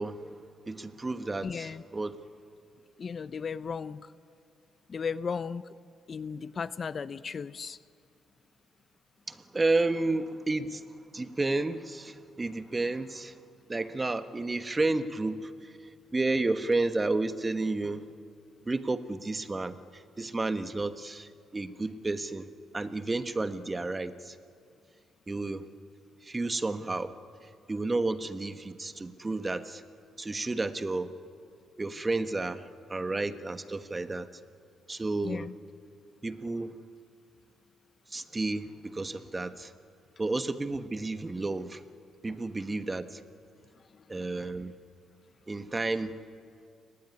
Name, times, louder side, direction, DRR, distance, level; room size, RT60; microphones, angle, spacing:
voice 1, 0.0-2.2 9.3-13.4 13.7-18.1 18.6-22.5 22.7-24.4 25.3-25.7 26.2-27.2 27.4-29.8 30.2-31.1 31.8-34.3 34.9-35.5 36.2-36.8 38.1-39.7 40.2-41.8 42.2-43.2 44.1-44.7 45.5-46.2, right 2 dB, 20° right, 1.3 m, -31 dB
voice 2, 1.4-1.8 3.0-4.1 4.9-5.6 6.1-7.8 35.2-35.5 43.9-44.0, left 6 dB, 45° left, 0.6 m, -35 dB
29.5 x 20.5 x 9.8 m
cardioid pair, 90°, 0 cm